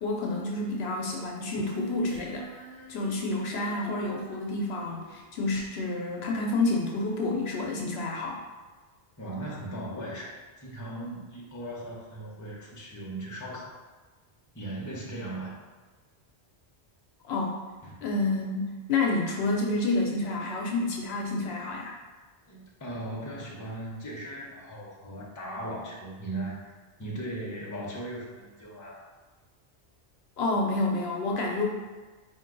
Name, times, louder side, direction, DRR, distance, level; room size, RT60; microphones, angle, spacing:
voice 1, 0.0-2.5 2.9-8.4 17.2-17.6 18.0-21.9 30.4-31.7, left 2 dB, 70° left, 0 dB, 0.8 m, -29 dB
Female singing, 1.7-5.2, equal, 20° right, 1.4 m, -44 dB
voice 2, 9.2-13.7 14.5-15.6 17.8-18.0 22.5-29.1, right 1 dB, 20° left, -4 dB, 0.7 m, -38 dB
4.5 x 2.6 x 3.7 m, 1.3 s
omnidirectional pair, 1.1 m